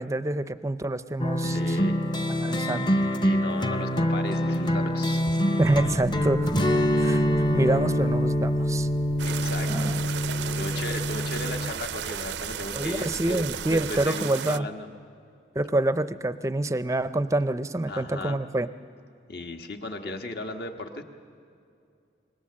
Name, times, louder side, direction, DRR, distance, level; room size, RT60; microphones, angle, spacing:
voice 1, 0.0-1.8 2.3-3.0 5.6-6.7 7.0-7.2 7.5-8.9 9.7-10.0 12.7-14.7 15.6-18.7, right 1 dB, 15° right, 13 dB, 0.5 m, -27 dB
sound 1, 1.2-11.7, equal, 25° left, 0.6 m, -25 dB
voice 2, 1.4-2.0 3.2-5.3 9.2-9.9 10.5-14.9 17.9-18.4 19.3-21.0, left 2 dB, 60° left, 5 dB, 1.4 m, -36 dB
sound 2, 5.6-14.1, equal, 45° left, 1.5 m, -44 dB
sound 3, 9.2-14.6, right 9 dB, 80° right, 0.5 m, -35 dB
25.0 x 20.5 x 7.7 m, 2.5 s
head